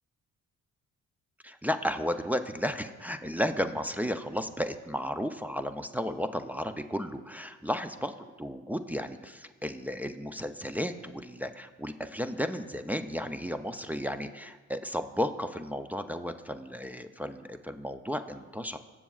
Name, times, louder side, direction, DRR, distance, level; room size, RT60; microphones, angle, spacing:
voice 1, 1.4-18.8, equal, 5° right, 6 dB, 0.4 m, -33 dB
19.5 x 7.3 x 2.3 m, 1.3 s
cardioid pair, 90°, 30 cm